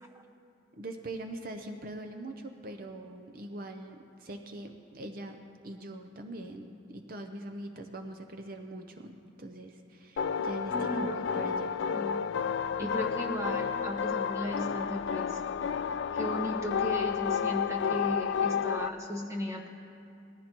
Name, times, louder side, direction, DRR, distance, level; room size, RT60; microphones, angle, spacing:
voice 1, 0.8-5.4 5.6-11.8 12.8-12.9, right 1 dB, 50° right, 6 dB, 0.6 m, -42 dB
sound 1, 10.2-18.9, left 7 dB, 70° left, 0.3 m, -31 dB
voice 2, 10.7-11.3 11.9-12.1 12.8-15.4 16.1-19.7, equal, 15° right, 0 dB, 1.2 m, -36 dB
19.0 x 15.0 x 3.0 m, 2.7 s
head